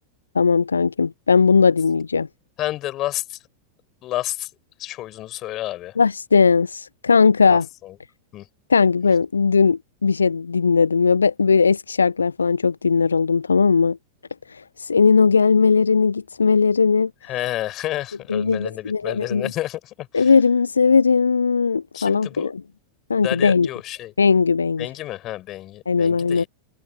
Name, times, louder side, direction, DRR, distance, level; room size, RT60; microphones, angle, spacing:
voice 1, 0.3-2.3 6.0-7.7 8.7-14.0 14.5-17.1 18.3-19.5 20.1-22.6 23.1-23.7 24.2-24.9 25.9-26.4, left 5 dB, 75° left, 0.6 m, -18 dB
voice 2, 2.6-3.4 4.0-4.5 4.8-6.0 7.5-8.0 8.3-8.5 17.2-20.3 21.9-22.5 23.2-24.1 24.8-26.5, left 15 dB, 35° left, 4.9 m, -30 dB
figure-of-eight pair, 90°, 0 cm